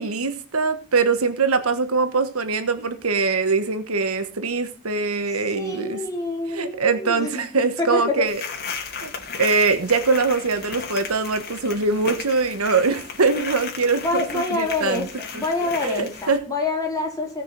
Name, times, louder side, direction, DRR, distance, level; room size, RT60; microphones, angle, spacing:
voice 1, 0.0-6.0 6.5-8.4 9.0-9.1 9.4-15.1 15.3-15.4 15.8-16.4, right 4 dB, 85° right, 10 dB, 1.3 m, -22 dB
voice 2, 5.5-7.5 7.8-8.3 14.0-15.1 15.3-17.4, left 3 dB, 15° left, -1 dB, 4.2 m, -26 dB
sound 1, 8.3-16.4, left 5 dB, 50° left, 2.6 m, -35 dB
17.0 x 6.1 x 6.0 m, 0.42 s
head